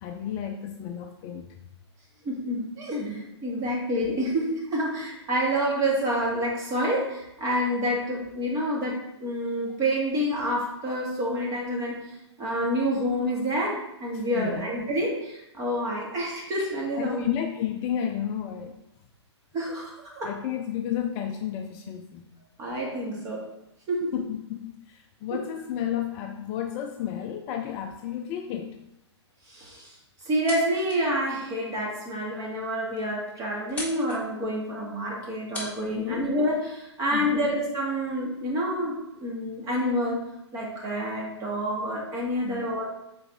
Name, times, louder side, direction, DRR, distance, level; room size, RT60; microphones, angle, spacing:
voice 1, 0.0-1.5 14.1-14.7 16.9-18.8 20.2-22.3 24.1-28.8 35.9-36.3 37.1-37.4 42.4-42.7, left 10 dB, 30° left, 4 dB, 0.5 m, -32 dB
voice 2, 2.2-12.0 12.4-17.3 19.5-20.3 22.6-23.4 23.9-24.1 25.3-25.4 29.5-29.9 30.3-40.2 40.5-42.8, equal, 25° right, -3 dB, 2.1 m, -28 dB
sound 1, 30.2-31.1 31.5-31.6 32.3-32.4 32.7-32.8 33.0-33.3 33.6-34.2 35.1-35.2 35.5-35.7, left 2 dB, 10° left, 1.8 m, -37 dB
6.9 x 4.2 x 3.6 m, 0.86 s
figure-of-eight pair, 120°, 15 cm